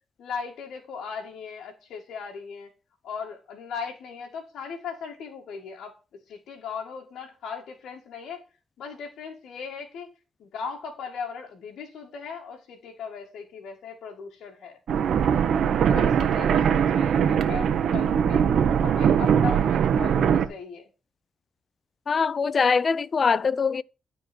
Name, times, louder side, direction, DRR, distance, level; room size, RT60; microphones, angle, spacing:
voice 1, 0.2-2.7 3.0-6.0 6.3-8.5 8.8-10.1 10.4-14.8 15.9-18.4 18.8-20.9, left 5 dB, 80° left, 2.0 m, -38 dB
sound 1, 14.9-20.5, right 8 dB, 75° right, 1.1 m, -21 dB
voice 2, 22.1-23.8, left 5 dB, 50° left, 0.5 m, -23 dB
13.5 x 4.5 x 6.1 m
cardioid pair, 65°, 0 cm